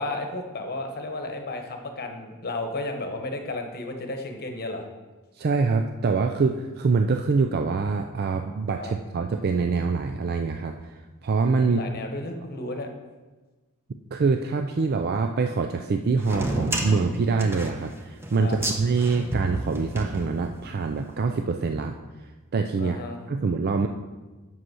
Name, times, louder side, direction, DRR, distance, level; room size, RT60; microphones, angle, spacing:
voice 1, 0.0-4.8 8.8-8.9 11.6-12.9 18.4-18.6 22.8-23.2, left 2 dB, 45° left, 5 dB, 1.1 m, -33 dB
voice 2, 5.4-10.7 11.2-11.8 14.1-22.0 22.5-23.0 23.3-23.9, right 4 dB, 45° right, 5 dB, 0.4 m, -25 dB
sound 1, 16.2-20.8, right 1 dB, 10° right, 0.9 m, -31 dB
7.8 x 5.6 x 6.2 m, 1.2 s
head